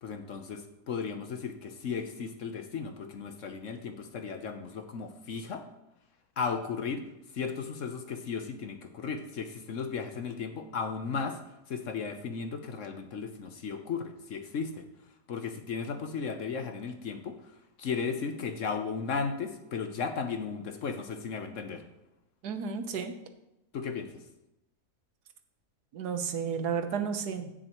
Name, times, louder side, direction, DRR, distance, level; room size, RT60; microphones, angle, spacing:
voice 1, 0.0-5.6 6.4-7.0 7.3-11.4 11.7-14.8 15.3-17.4 17.8-21.8 23.7-24.1, left 5 dB, 55° left, 7 dB, 1.1 m, -35 dB
voice 2, 22.4-23.1 25.9-27.5, right 6 dB, 75° right, 8 dB, 1.5 m, -32 dB
16.5 x 6.6 x 3.0 m, 0.89 s
omnidirectional pair, 1.7 m